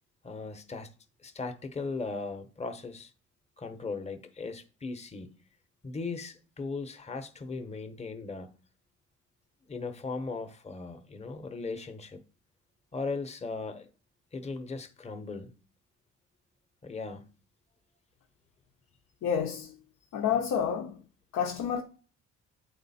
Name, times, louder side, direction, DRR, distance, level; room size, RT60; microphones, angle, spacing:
voice 1, 0.2-0.9 1.2-3.1 3.6-5.3 5.8-8.5 9.7-12.2 12.9-13.9 14.3-15.5 16.8-17.3, left 3 dB, 20° left, 1.0 m, -38 dB
voice 2, 19.2-19.8 20.1-21.0 21.3-21.8, left 8 dB, 80° left, 1.0 m, -29 dB
9.0 x 4.0 x 4.2 m
cardioid pair, 90°, 30 cm